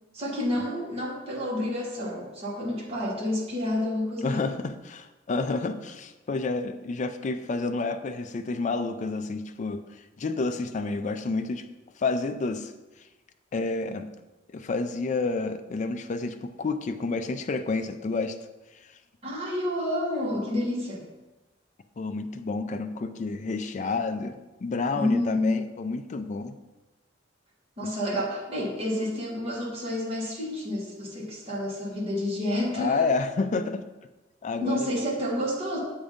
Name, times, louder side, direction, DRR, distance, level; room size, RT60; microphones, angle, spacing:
voice 1, 0.1-4.4 19.2-21.1 24.9-25.6 27.8-33.0 34.6-35.8, left 1 dB, 30° right, -5 dB, 1.4 m, -29 dB
voice 2, 4.2-9.8 10.2-11.7 12.0-12.7 13.5-14.1 14.5-18.4 22.0-26.6 27.8-27.9 32.8-33.8 34.4-34.9, left 3 dB, 40° left, 9 dB, 0.4 m, -29 dB
7.0 x 2.7 x 5.0 m, 1.1 s
head